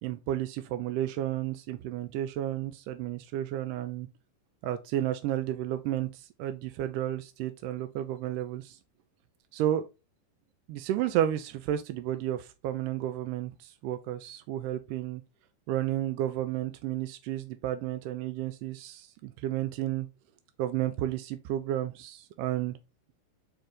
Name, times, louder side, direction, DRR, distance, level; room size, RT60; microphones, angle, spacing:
voice 1, 0.0-4.1 4.6-8.8 9.5-9.9 10.7-15.2 15.7-20.1 20.6-22.8, right 12 dB, 45° right, 0.3 m, -32 dB
4.2 x 2.5 x 3.4 m
figure-of-eight pair, 90°, 0 cm